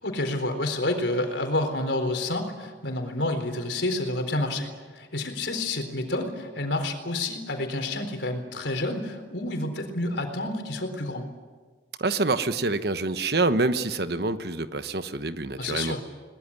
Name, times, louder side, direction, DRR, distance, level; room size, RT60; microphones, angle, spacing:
voice 1, 0.0-11.2 15.6-16.0, left 2 dB, 85° left, 6 dB, 4.0 m, -29 dB
voice 2, 12.0-16.0, right 3 dB, 65° right, 11 dB, 1.2 m, -26 dB
22.5 x 20.0 x 9.9 m, 1.4 s
head